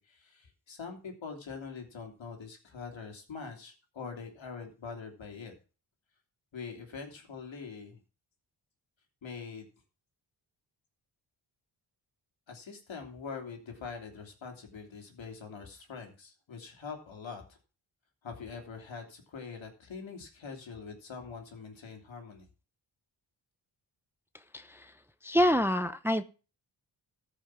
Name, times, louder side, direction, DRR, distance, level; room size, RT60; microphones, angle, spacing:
voice 1, 0.0-5.5 6.5-8.0 9.2-9.7 12.5-17.4 18.2-22.5, left 5 dB, 70° left, 3 dB, 3.1 m, -44 dB
voice 2, 24.5-24.9 25.2-26.2, equal, 5° right, 11 dB, 0.7 m, -27 dB
14.0 x 5.8 x 6.1 m, 0.35 s
cardioid pair, 80°, 48 cm